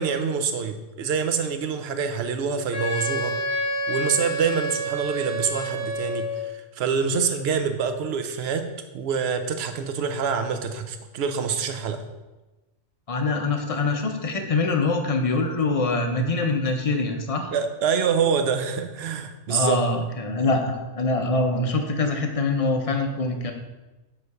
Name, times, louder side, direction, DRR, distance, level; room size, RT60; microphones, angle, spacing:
voice 1, 0.0-3.4 3.9-8.7 8.9-12.0 17.4-20.0, right 6 dB, 60° right, 8 dB, 0.8 m, -26 dB
Wind instrument woodwind instrument, 2.7-6.5, equal, 15° left, 1.1 m, -28 dB
voice 2, 13.1-17.5 19.5-23.5, left 3 dB, 40° left, 4 dB, 0.6 m, -24 dB
7.9 x 3.2 x 4.7 m, 1.1 s
omnidirectional pair, 1.3 m